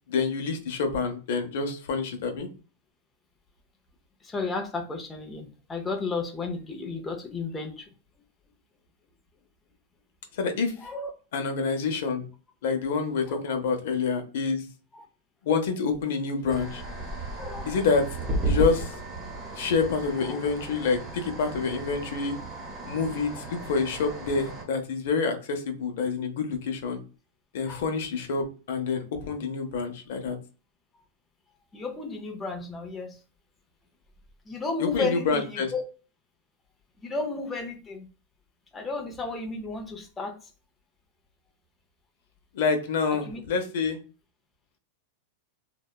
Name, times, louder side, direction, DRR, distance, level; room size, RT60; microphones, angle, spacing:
voice 1, 0.1-2.5 10.4-10.7 11.3-12.2 12.6-14.6 15.4-16.8 17.7-18.0 18.4-18.9 19.6-22.3 22.8-27.0 27.5-30.4 34.8-35.7 42.5-44.0, left 5 dB, 70° left, 6 dB, 0.6 m, -27 dB
voice 2, 4.2-7.9 10.8-11.1 13.3-13.6 14.9-15.1 17.4-17.7 20.2-20.4 27.6-27.9 31.7-33.2 34.5-35.8 37.0-38.1 38.7-40.4 43.3-43.4, left 3 dB, 15° left, 2 dB, 0.5 m, -33 dB
sound 1, 16.5-24.6, right 2 dB, 15° right, 0.8 m, -34 dB
2.7 x 2.1 x 2.2 m, 0.35 s
supercardioid pair, 140°, 0 cm